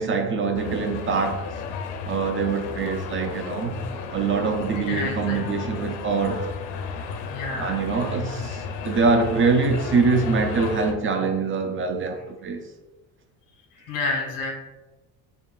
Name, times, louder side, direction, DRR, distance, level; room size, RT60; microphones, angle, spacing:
voice 1, 0.0-1.4 2.0-3.8 4.1-6.5 7.6-12.6, right 4 dB, 30° right, 0.4 m, -24 dB
sound 1, 0.6-10.9, left 5 dB, 75° left, 0.5 m, -33 dB
voice 2, 4.8-5.7 7.3-7.8 13.7-14.5, left 3 dB, 50° left, 1.1 m, -30 dB
4.5 x 2.9 x 2.3 m
supercardioid pair, 100°, 43 cm